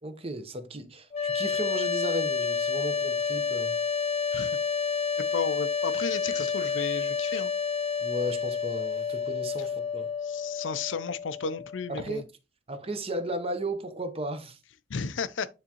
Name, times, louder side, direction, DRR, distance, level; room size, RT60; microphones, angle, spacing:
voice 1, 0.0-3.8 8.0-10.1 11.9-12.2 12.7-14.6, right 1 dB, 30° right, 0.8 m, -35 dB
sound 1, 1.1-12.2, left 6 dB, 30° left, 1.0 m, -30 dB
voice 2, 5.3-7.5 10.2-12.2 14.9-15.5, left 5 dB, 80° left, 0.5 m, -33 dB
9.5 x 3.5 x 2.9 m
head